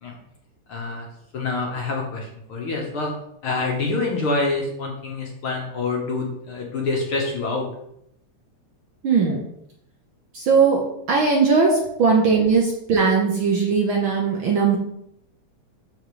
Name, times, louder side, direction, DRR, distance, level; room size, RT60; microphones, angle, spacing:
voice 1, 0.7-1.1 1.3-3.1 3.4-7.7 9.3-9.4 11.7-11.8, left 3 dB, 55° left, -1 dB, 1.8 m, -26 dB
voice 2, 9.0-9.4 10.3-11.7 12.0-14.8, right 5 dB, 65° right, -1 dB, 1.3 m, -19 dB
12.5 x 4.3 x 3.2 m, 0.75 s
omnidirectional pair, 3.3 m